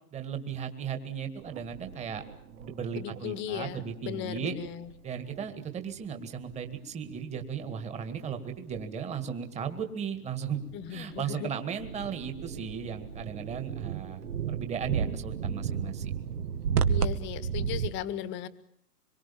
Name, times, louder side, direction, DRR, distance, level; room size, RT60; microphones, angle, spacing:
voice 1, 0.1-4.5 5.0-10.6 10.9-16.2, right 7 dB, 15° right, 7 dB, 2.0 m, -36 dB
sound 1, 1.4-6.0 6.4-6.7 6.9-8.8 9.1-9.2 9.6-9.8 10.4-17.9, right 7 dB, 70° right, 2.1 m, -34 dB
voice 2, 2.9-4.9 10.7-11.5 16.9-18.5, left 11 dB, 25° left, 15 dB, 1.5 m, -37 dB
25.5 x 23.5 x 7.1 m, 0.71 s
hypercardioid pair, 150°, 48 cm